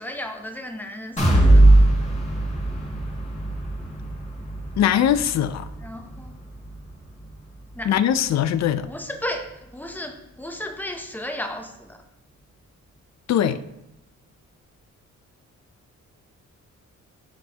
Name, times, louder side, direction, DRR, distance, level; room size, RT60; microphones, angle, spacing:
voice 1, 0.0-1.8 5.8-6.3 7.7-7.9 8.8-12.0, left 1 dB, 5° left, 0.7 m, -34 dB
sound 1, 1.2-9.0 9.4-9.5 9.9-10.0, right 1 dB, 20° left, 1.7 m, -21 dB
voice 2, 4.8-5.7 7.8-8.9 13.3-13.6, left 10 dB, 60° left, 0.4 m, -21 dB
9.2 x 6.0 x 2.9 m
wide cardioid pair, 160°, 30 cm